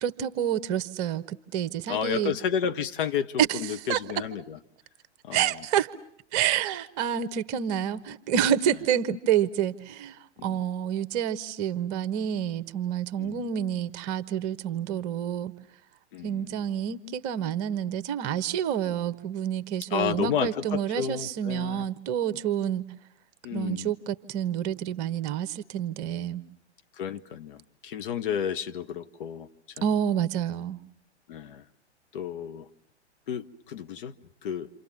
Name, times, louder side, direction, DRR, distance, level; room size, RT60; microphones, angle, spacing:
voice 1, 0.0-2.3 3.4-4.0 5.3-5.9 6.3-15.5 16.2-22.8 23.5-26.4 29.8-30.8, right 9 dB, 35° right, 1.3 m, -28 dB
voice 2, 1.9-4.6 5.2-5.6 10.4-10.6 13.2-13.5 16.1-16.7 19.9-21.9 23.4-23.9 27.0-29.9 31.3-31.6 32.1-32.7 33.3-34.1 34.4-34.7, left 8 dB, 50° left, 1.3 m, -32 dB
28.5 x 27.0 x 7.4 m
figure-of-eight pair, 110°, 34 cm